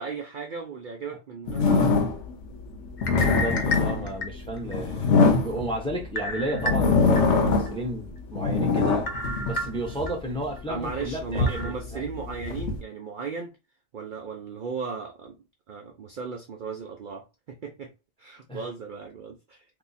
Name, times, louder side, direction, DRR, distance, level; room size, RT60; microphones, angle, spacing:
voice 1, 0.0-2.2 10.7-13.5 13.9-15.4 15.7-17.9 18.2-19.6, right 5 dB, 60° right, 0.5 m, -36 dB
sound 1, 1.5-2.3 2.8-6.0 6.5-7.9 8.2-10.1 10.7-12.8, left 4 dB, 70° left, 0.9 m, -23 dB
sound 2, 3.0-4.7 5.2-5.3 6.2-7.2 7.7-7.8 9.1-10.1 10.6-10.7 11.5-11.7, left 1 dB, 45° left, 0.7 m, -31 dB
voice 2, 3.1-9.1 9.4-12.1 18.5-18.6, right 1 dB, 5° left, 0.6 m, -33 dB
2.7 x 2.3 x 4.0 m
omnidirectional pair, 1.3 m